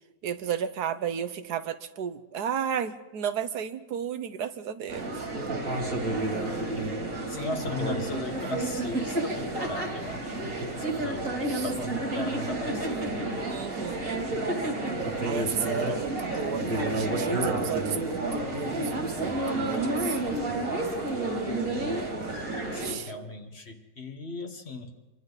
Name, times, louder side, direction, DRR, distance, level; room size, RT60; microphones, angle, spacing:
voice 1, 0.2-5.1 11.5-11.7 13.5-14.0 15.2-20.2 22.8-23.1, right 8 dB, 85° right, 11 dB, 1.5 m, -33 dB
sound 1, 4.9-22.9, right 2 dB, 60° right, 3.4 m, -30 dB
voice 2, 7.3-10.4 10.7-13.2 22.7-24.9, left 2 dB, 40° left, 5 dB, 1.8 m, -37 dB
27.0 x 23.5 x 4.1 m, 1.1 s
omnidirectional pair, 1.7 m